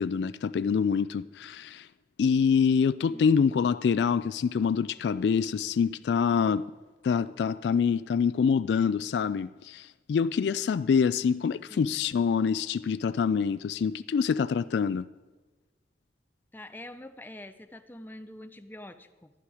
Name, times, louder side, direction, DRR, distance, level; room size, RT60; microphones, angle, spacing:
voice 1, 0.0-1.9 2.2-6.7 7.0-15.1, left 6 dB, 70° left, 0.3 m, -26 dB
voice 2, 3.0-3.3 11.7-12.3 16.5-19.3, left 1 dB, 10° left, 0.5 m, -46 dB
11.5 x 11.5 x 4.8 m
head